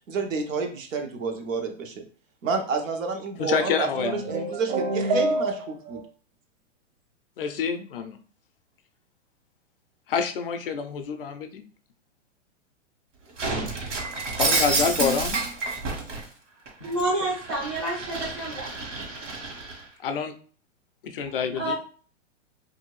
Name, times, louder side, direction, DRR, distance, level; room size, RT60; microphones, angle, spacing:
voice 1, 0.1-1.9 2.4-3.9 4.3-6.0, right 4 dB, 85° right, 3 dB, 1.0 m, -29 dB
voice 2, 3.4-4.2 7.4-8.2 10.1-11.6 14.3-15.4 20.0-20.3 21.0-21.7, left 6 dB, 50° left, 8 dB, 0.4 m, -27 dB
sound 1, 3.9-6.0, right 2 dB, 50° right, 0.8 m, -27 dB
Shatter, 13.4-16.2 16.7-19.8, right 3 dB, 70° right, 1.4 m, -29 dB
voice 3, 16.8-18.7 21.2-21.7, right 1 dB, 20° right, -9 dB, 0.3 m, -29 dB
2.6 x 2.6 x 3.0 m, 0.42 s
hypercardioid pair, 170°, 38 cm